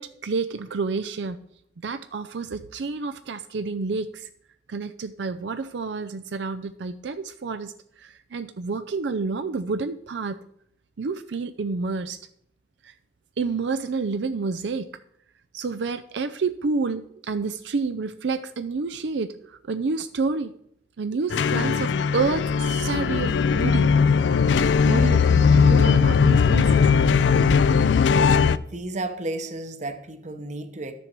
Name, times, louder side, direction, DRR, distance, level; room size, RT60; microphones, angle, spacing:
voice 1, 0.0-1.4 1.8-4.3 4.7-7.7 8.0-10.4 11.0-12.2 12.8-12.9 13.4-14.9 15.5-20.5 21.0-23.9 24.8-27.0, right 4 dB, 80° right, 0.5 m, -29 dB
sound 1, 21.3-28.6, left 6 dB, 85° left, 0.4 m, -19 dB
voice 2, 28.5-30.9, right 2 dB, 40° right, 0.9 m, -33 dB
12.0 x 6.9 x 4.6 m
head